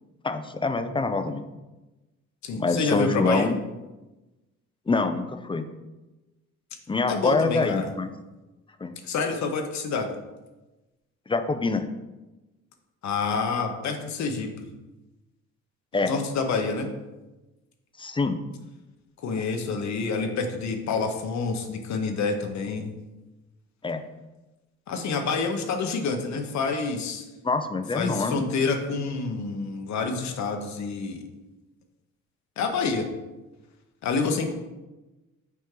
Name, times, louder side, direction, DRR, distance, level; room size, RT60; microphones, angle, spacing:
voice 1, 0.2-1.4 2.6-3.6 4.9-5.7 6.9-8.1 8.8-8.9 11.3-11.9 15.9-16.1 18.0-18.4 23.8-24.0 27.4-28.5, left 3 dB, 15° left, 8 dB, 0.5 m, -25 dB
voice 2, 2.4-3.5 7.1-7.9 9.0-10.1 13.0-14.6 16.0-16.9 19.2-22.9 24.9-27.3 27.9-31.3 32.6-33.1 34.0-34.5, left 4 dB, 65° left, 4 dB, 0.8 m, -28 dB
5.9 x 4.4 x 3.7 m, 1.1 s
cardioid pair, 90°, 30 cm